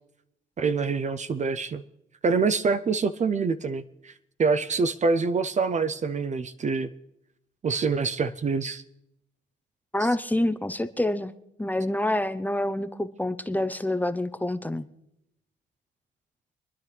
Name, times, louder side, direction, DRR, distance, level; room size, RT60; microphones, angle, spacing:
voice 1, 0.6-1.8 2.2-4.1 4.4-6.9 7.6-8.8 10.0-10.1, right 4 dB, 35° right, 11 dB, 0.6 m, -25 dB
voice 2, 9.9-11.3 11.6-14.9, left 1 dB, 10° left, 11 dB, 0.6 m, -27 dB
27.0 x 10.5 x 3.3 m, 0.83 s
cardioid pair, 90°, 20 cm